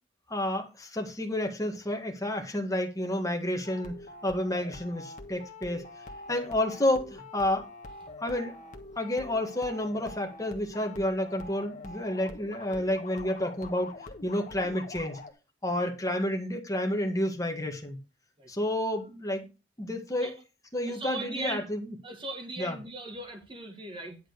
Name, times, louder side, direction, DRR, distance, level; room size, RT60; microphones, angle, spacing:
voice 1, 0.3-3.9 4.2-5.8 6.3-7.6 8.2-8.6 9.0-13.9 14.2-15.2 15.6-18.0 18.5-19.5 19.8-20.3 20.7-21.9 22.6-22.7, left 1 dB, 20° left, 1.7 m, -30 dB
sound 1, 3.6-15.3, left 2 dB, 45° left, 1.4 m, -45 dB
voice 2, 20.8-21.6 22.0-24.2, right 2 dB, 25° right, 1.7 m, -39 dB
10.0 x 3.9 x 6.5 m
head